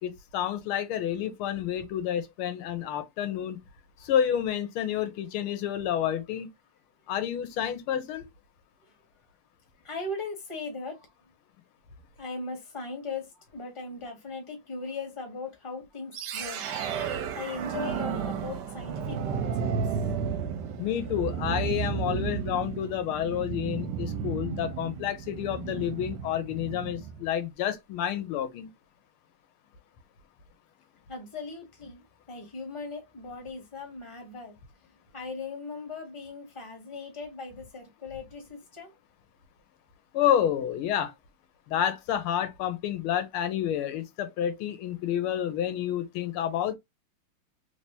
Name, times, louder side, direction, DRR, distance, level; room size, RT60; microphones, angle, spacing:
voice 1, 0.0-3.6 4.0-6.5 7.1-8.3 20.8-28.7 40.1-41.1 41.7-46.8, left 10 dB, 85° left, 1.5 m, -29 dB
voice 2, 9.8-11.1 12.2-16.6 17.3-19.7 31.1-34.6 35.1-38.9, left 3 dB, 20° left, 1.1 m, -38 dB
sound 1, 16.1-27.2, right 7 dB, 70° right, 1.1 m, -33 dB
3.3 x 3.3 x 2.7 m
omnidirectional pair, 2.3 m